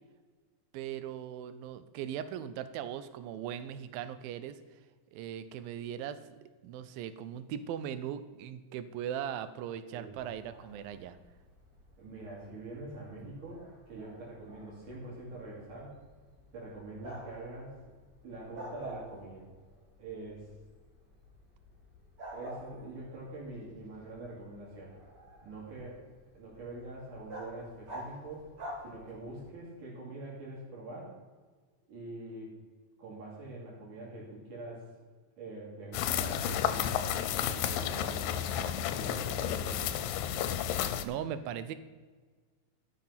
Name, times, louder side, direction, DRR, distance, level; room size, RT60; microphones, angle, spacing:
voice 1, 0.7-4.6 5.1-6.2 6.6-11.2 40.7-41.8, right 9 dB, 85° right, 13 dB, 2.5 m, -39 dB
Bark, 10.1-29.5, equal, 30° right, 3.4 m, -50 dB
voice 2, 12.0-16.0 16.5-17.8 18.2-19.5 20.0-20.5 22.3-24.9 25.4-28.5 28.8-31.1 31.9-32.5 33.0-34.9 35.4-38.4 38.9-40.1, right 2 dB, 60° right, -5 dB, 4.1 m, -44 dB
sound 1, 35.9-41.0, left 10 dB, 80° left, 2.3 m, -32 dB
13.0 x 6.7 x 5.7 m, 1.4 s
omnidirectional pair, 4.1 m